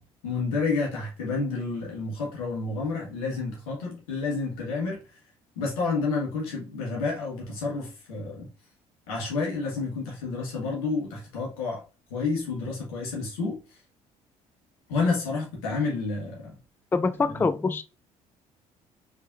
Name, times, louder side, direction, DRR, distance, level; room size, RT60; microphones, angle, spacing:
voice 1, 0.2-5.0 5.5-8.5 9.1-11.8 12.1-13.8 14.9-16.6 17.4-17.5, left 4 dB, 85° left, 1.5 m, -30 dB
voice 2, 16.9-17.8, left 4 dB, 10° left, 0.3 m, -24 dB
3.6 x 3.3 x 2.6 m
hypercardioid pair, 55°, 18 cm